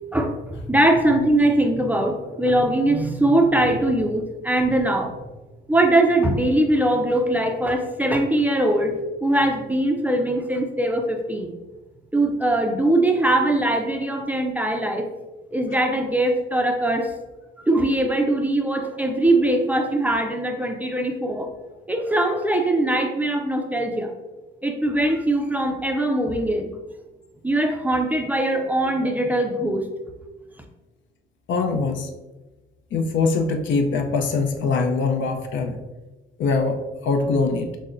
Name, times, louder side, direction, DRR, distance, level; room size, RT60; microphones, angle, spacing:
voice 1, 0.1-5.1 5.7-11.5 12.1-15.1 15.5-17.1 17.7-21.5 21.9-24.1 24.6-26.7 27.4-29.9, right 1 dB, 10° right, 3 dB, 0.4 m, -21 dB
voice 2, 31.5-32.1 32.9-35.8 36.4-37.8, left 4 dB, 70° left, 4 dB, 0.5 m, -23 dB
6.1 x 2.1 x 2.5 m, 1.1 s
cardioid pair, 90°, 20 cm